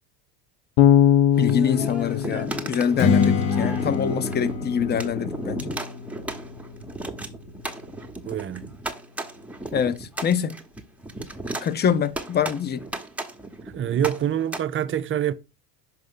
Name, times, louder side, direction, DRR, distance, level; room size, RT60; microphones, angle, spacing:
Bass guitar, 0.8-3.8, left 10 dB, 60° left, 0.9 m, -21 dB
sound 1, 1.3-14.6, right 2 dB, 5° right, 1.0 m, -35 dB
voice 1, 1.4-5.7 9.7-10.6 11.6-12.8, left 8 dB, 20° left, 0.5 m, -25 dB
Strum, 3.0-8.2, left 6 dB, 40° left, 1.0 m, -27 dB
voice 2, 8.2-8.7 13.7-15.3, right 10 dB, 25° right, 0.5 m, -26 dB
6.0 x 5.0 x 3.8 m
hypercardioid pair, 70°, 49 cm